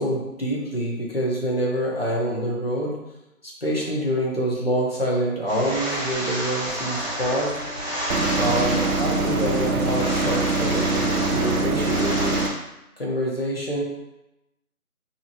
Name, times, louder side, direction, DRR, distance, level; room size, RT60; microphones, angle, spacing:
voice 1, 0.0-3.0 3.4-7.5 8.4-12.4 13.0-13.8, equal, 40° left, -3 dB, 0.8 m, -26 dB
sound 1, 5.5-12.5, equal, 30° right, 1.1 m, -30 dB
sound 2, 6.9-10.9, left 3 dB, 70° left, 1.5 m, -41 dB
sound 3, 8.1-12.5, right 3 dB, 70° right, 0.5 m, -24 dB
3.4 x 2.8 x 2.8 m, 0.93 s
figure-of-eight pair, 170°, 44 cm